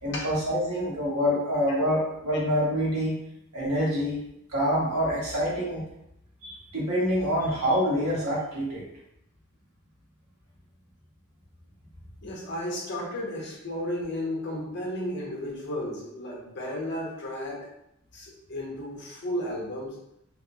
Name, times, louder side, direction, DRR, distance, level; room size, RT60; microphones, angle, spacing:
voice 1, 0.0-3.1 3.5-4.2 4.5-5.8 6.4-8.8, equal, 75° right, -6 dB, 1.1 m, -26 dB
voice 2, 12.2-17.7 18.1-20.0, left 1 dB, 55° left, -2 dB, 0.7 m, -33 dB
2.9 x 2.0 x 2.6 m, 0.80 s
head